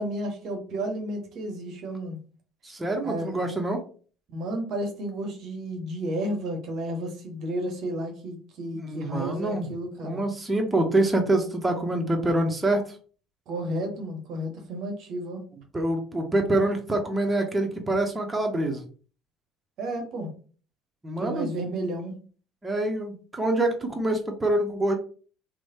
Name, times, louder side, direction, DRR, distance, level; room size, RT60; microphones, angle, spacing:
voice 1, 0.0-2.2 3.0-3.4 4.3-10.2 13.5-15.4 19.8-20.3 21.2-22.2, right 1 dB, 55° right, 3 dB, 0.7 m, -32 dB
voice 2, 2.6-3.8 8.7-9.7 10.0-12.8 15.7-18.8 21.0-21.5 22.6-24.9, right 1 dB, 20° right, 3 dB, 0.7 m, -25 dB
3.0 x 2.1 x 2.8 m, 0.40 s
hypercardioid pair, 60°, 0 cm